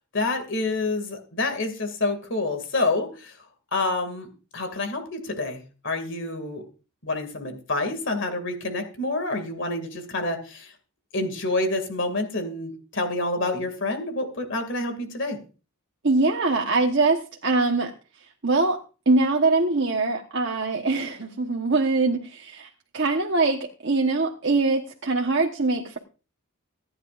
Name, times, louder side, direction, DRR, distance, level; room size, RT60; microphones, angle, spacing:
voice 1, 0.1-3.3 3.7-4.3 4.5-6.6 7.0-10.7 11.1-15.4, left 2 dB, 55° left, 6 dB, 2.4 m, -28 dB
voice 2, 16.0-17.9 18.4-26.0, right 3 dB, 55° right, 1 dB, 1.2 m, -23 dB
25.5 x 10.0 x 2.6 m, 0.34 s
head